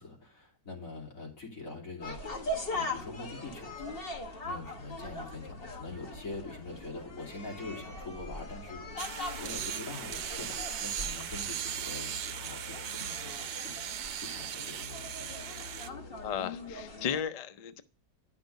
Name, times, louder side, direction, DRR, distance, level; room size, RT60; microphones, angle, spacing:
voice 1, 0.0-2.4 2.7-4.0 4.4-13.7 14.2-15.4, left 3 dB, 65° left, -1 dB, 3.1 m, -44 dB
sound 1, 2.0-17.2, left 2 dB, 40° left, 1.5 m, -41 dB
sound 2, 9.0-15.9, right 9 dB, 85° right, 1.2 m, -38 dB
voice 2, 16.2-17.8, left 8 dB, 85° left, 10 dB, 0.3 m, -35 dB
10.5 x 6.0 x 5.2 m, 0.39 s
omnidirectional pair, 1.6 m